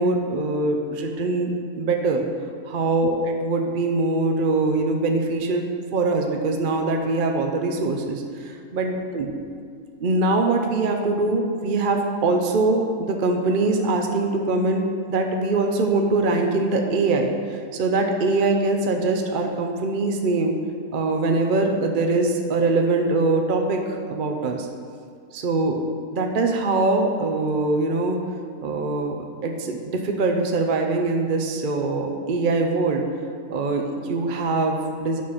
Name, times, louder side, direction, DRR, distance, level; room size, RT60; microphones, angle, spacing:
voice 1, 0.0-1.5 1.8-2.3 2.6-9.3 10.0-20.6 20.9-24.7 25.3-25.8 26.1-28.2 28.6-33.0 33.5-35.2, right 3 dB, 50° right, 3 dB, 0.6 m, -23 dB
9.3 x 6.2 x 4.2 m, 2.3 s
omnidirectional pair, 1.5 m